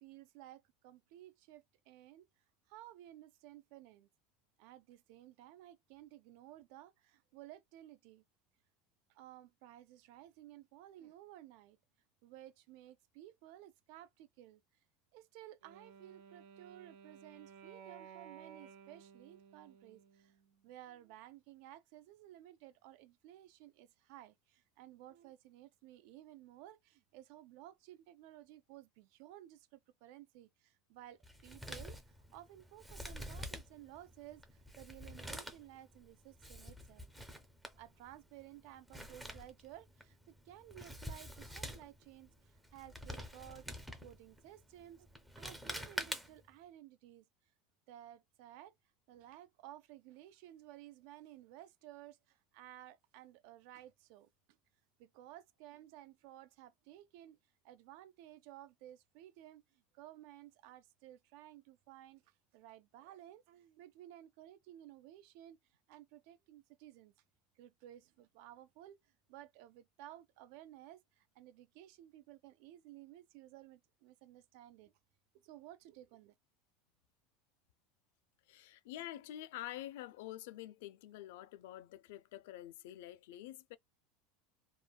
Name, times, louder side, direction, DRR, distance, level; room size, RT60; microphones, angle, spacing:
voice 1, 0.0-2.2 2.7-4.1 4.6-8.2 9.1-11.8 12.2-14.6 15.1-20.4 20.6-37.1 37.8-43.7 44.0-45.1 45.4-47.3 47.9-48.7 49.1-54.3 55.0-57.4 57.6-65.6 65.9-67.1 67.6-69.0 69.3-74.9 75.4-76.3, right 13 dB, 60° right, 0.4 m, -56 dB
Wind instrument woodwind instrument, 15.6-20.7, right 7 dB, 80° right, 1.2 m, -56 dB
Male speech man speaking, 31.2-46.6, equal, 5° right, 0.5 m, -48 dB
voice 2, 78.5-83.8, left 14 dB, 80° left, 0.3 m, -47 dB
3.1 x 2.2 x 2.2 m
supercardioid pair, 160°, 0 cm